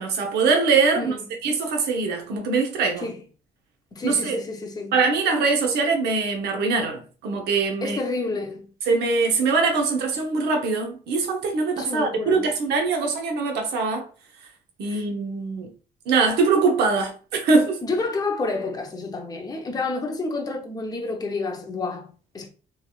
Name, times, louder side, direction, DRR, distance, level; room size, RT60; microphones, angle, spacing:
voice 1, 0.0-1.1 1.4-3.1 4.0-4.4 4.9-8.0 8.9-14.1 14.8-15.7 16.1-17.8, right 4 dB, 75° right, 0.8 m, -22 dB
voice 2, 3.9-5.0 7.8-8.7 11.8-12.5 14.8-15.0 17.8-22.5, left 3 dB, 25° left, 0.7 m, -29 dB
3.2 x 2.8 x 2.3 m
cardioid pair, 110°, 17 cm